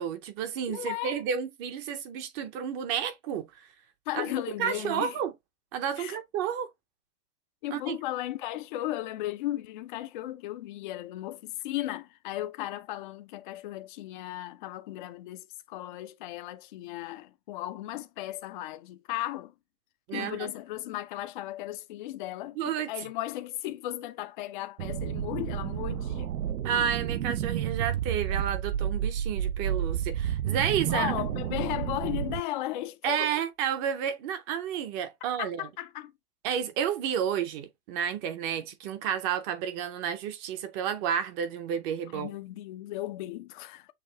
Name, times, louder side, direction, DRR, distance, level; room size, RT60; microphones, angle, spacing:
voice 1, 0.0-3.7 4.1-4.3 4.6-5.3 5.7-6.7 7.7-8.0 20.1-20.5 22.6-22.9 26.6-31.2 33.0-35.7 36.4-42.4, right 8 dB, 25° right, 0.6 m, -31 dB
voice 2, 0.7-1.2 4.1-5.2 6.0-6.2 7.6-19.5 20.1-26.3 30.9-33.3 35.4-36.1 42.1-43.9, left 15 dB, 35° left, 0.4 m, -36 dB
sound 1, 24.8-32.4, right 10 dB, 90° right, 0.5 m, -31 dB
6.6 x 2.5 x 2.9 m
hypercardioid pair, 125°, 45 cm